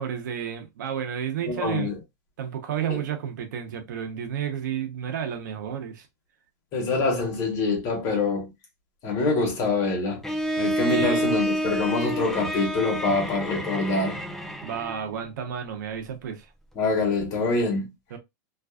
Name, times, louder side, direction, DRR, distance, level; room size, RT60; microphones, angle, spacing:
voice 1, 0.0-1.9 2.4-6.1 10.9-11.1 14.6-16.5 18.1-18.2, right 8 dB, 85° right, 0.7 m, -31 dB
voice 2, 1.4-2.0 2.9-3.0 6.7-8.5 9.0-10.2 10.6-14.2 16.8-17.9, left 3 dB, 35° left, 1.0 m, -25 dB
Bowed string instrument, 10.2-15.1, right 1 dB, 5° left, 0.3 m, -28 dB
2.5 x 2.3 x 2.2 m
supercardioid pair, 155°, 10 cm